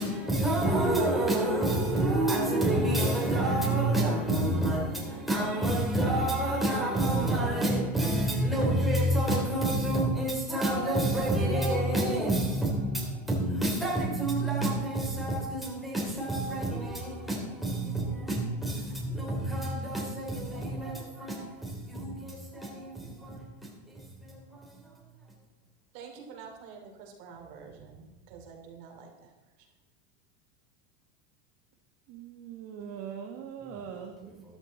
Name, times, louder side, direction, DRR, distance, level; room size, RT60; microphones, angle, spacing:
voice 1, 0.0-24.9, right 1 dB, ahead, 3.3 m, -28 dB
voice 2, 25.9-29.7, right 6 dB, 65° right, 2.8 m, -48 dB
voice 3, 32.1-34.4, right 8 dB, 45° right, 1.4 m, -41 dB
13.0 x 11.5 x 4.1 m
supercardioid pair, 135°, 32 cm